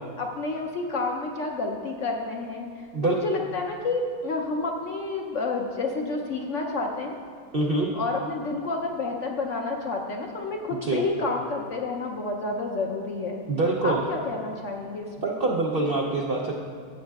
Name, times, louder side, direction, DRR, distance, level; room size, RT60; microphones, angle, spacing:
voice 1, 0.2-7.2 7.9-13.4 13.8-15.4, left 3 dB, 65° left, 1 dB, 0.7 m, -30 dB
voice 2, 7.5-7.9 10.8-11.0 13.5-14.0 15.2-16.5, right 2 dB, 90° right, 0 dB, 0.5 m, -25 dB
14.0 x 7.5 x 2.3 m, 2.2 s
omnidirectional pair, 1.9 m